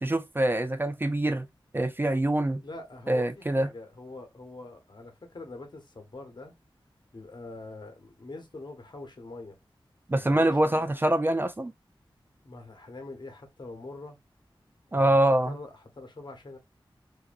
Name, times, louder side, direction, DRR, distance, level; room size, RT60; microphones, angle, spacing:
voice 1, 0.0-1.5 1.7-2.6 3.1-3.7 10.1-11.7 14.9-15.6, right 1 dB, 25° right, 0.4 m, -24 dB
voice 2, 2.6-6.5 7.1-9.6 10.1-10.9 12.4-14.2 14.9-15.2 15.5-16.6, left 2 dB, 55° left, 0.9 m, -44 dB
2.5 x 2.5 x 2.3 m
cardioid pair, 40°, 9 cm